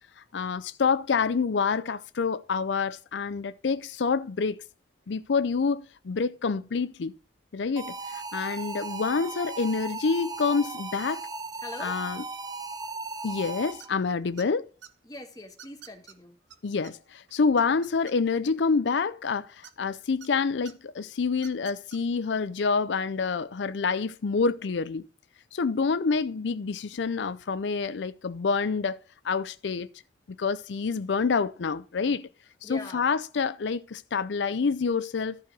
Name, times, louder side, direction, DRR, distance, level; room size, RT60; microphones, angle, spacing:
voice 1, 0.2-4.6 5.1-7.1 7.5-11.2 11.8-12.2 13.2-14.7 16.6-25.1 25.5-29.0 29.2-29.9 30.4-32.3 32.6-35.4, left 5 dB, 80° left, 0.5 m, -27 dB
sound 1, 7.8-14.0, right 3 dB, 20° right, 0.6 m, -37 dB
voice 2, 11.6-11.9 15.1-16.3 32.6-33.0, left 2 dB, 20° left, 1.6 m, -42 dB
sound 2, 13.8-14.1 14.4-14.9 15.6-16.1 16.5-16.6 16.8-16.9 17.3-18.4 19.6-20.3 20.6-20.7 21.3-22.0, right 9 dB, 90° right, 1.2 m, -48 dB
14.0 x 4.8 x 6.0 m
head